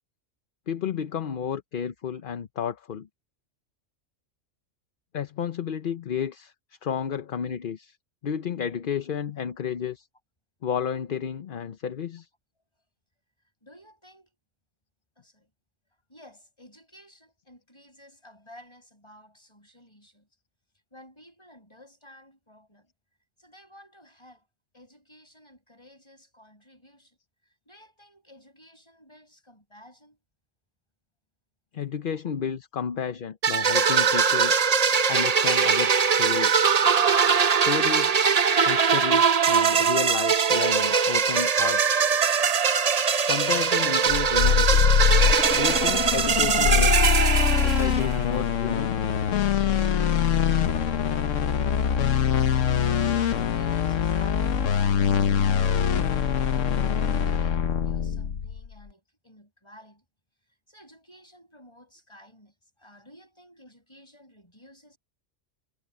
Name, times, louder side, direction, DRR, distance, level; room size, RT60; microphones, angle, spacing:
voice 1, 0.7-3.1 5.1-6.5 6.8-8.0 8.2-10.1 10.6-12.3 31.7-34.5 35.1-36.6 37.5-38.2 38.6-42.1 43.3-44.8 45.5-47.1 47.5-49.0, left 7 dB, 50° left, 0.8 m, -32 dB
voice 2, 13.6-14.4 15.2-15.5 16.1-20.3 20.9-22.9 23.4-24.5 24.7-27.2 27.4-30.2 52.8-60.1 60.7-65.0, equal, 20° left, 7.6 m, -53 dB
sound 1, 33.4-48.2, right 6 dB, 40° right, 0.7 m, -21 dB
sound 2, 44.1-58.7, left 7 dB, 85° left, 1.3 m, -23 dB
omnidirectional pair, 1.3 m